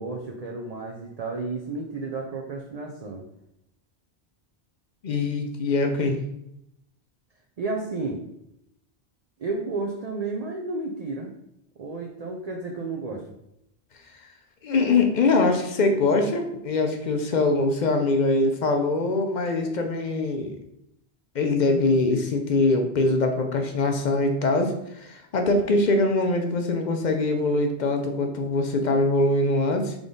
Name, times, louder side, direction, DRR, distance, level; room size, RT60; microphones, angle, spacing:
voice 1, 0.0-3.3 7.6-8.2 9.4-11.3 11.8-13.2, right 3 dB, 50° right, 0 dB, 0.5 m, -32 dB
voice 2, 5.0-6.2 14.2-14.3 14.6-20.6 21.3-30.0, left 2 dB, 55° left, 4 dB, 0.6 m, -23 dB
3.7 x 3.4 x 3.8 m, 0.79 s
omnidirectional pair, 1.1 m